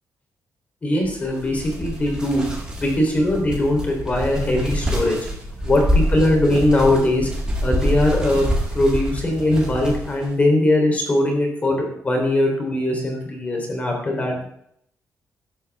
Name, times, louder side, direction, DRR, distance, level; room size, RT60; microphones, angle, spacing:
voice 1, 0.8-2.5 2.8-5.2 5.6-7.3 7.6-14.4, left 1 dB, 25° left, 1 dB, 3.8 m, -20 dB
sound 1, 1.0-10.3, equal, 15° right, 4.7 m, -26 dB
15.0 x 13.0 x 3.7 m, 0.70 s
wide cardioid pair, 160°, 6 cm